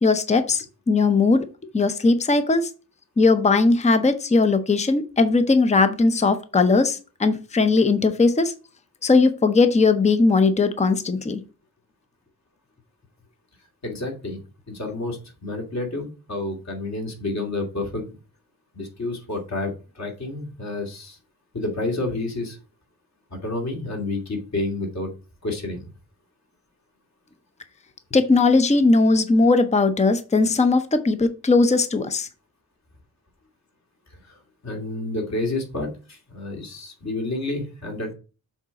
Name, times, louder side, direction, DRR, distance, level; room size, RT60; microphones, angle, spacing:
voice 1, 0.0-1.4 1.7-2.7 3.2-8.5 9.0-11.4 28.1-32.3, left 3 dB, 20° left, 9 dB, 0.7 m, -19 dB
voice 2, 13.8-14.4 14.7-18.2 18.7-21.2 21.5-22.6 23.3-25.1 25.4-25.9 34.2-38.1, left 2 dB, 50° left, 1 dB, 2.5 m, -30 dB
7.2 x 4.0 x 5.8 m, 0.33 s
wide cardioid pair, 135°, 35 cm